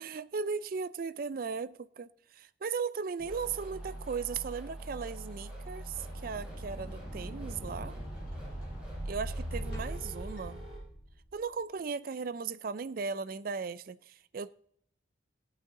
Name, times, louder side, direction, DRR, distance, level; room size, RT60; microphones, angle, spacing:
voice 1, 0.0-8.0 9.1-10.6 11.3-14.5, right 5 dB, 45° right, 0.4 m, -37 dB
sound 1, 3.2-10.8, right 1 dB, 5° right, 5.3 m, -44 dB
sound 2, 5.7-11.3, equal, 45° left, 3.5 m, -42 dB
16.0 x 8.9 x 3.7 m
head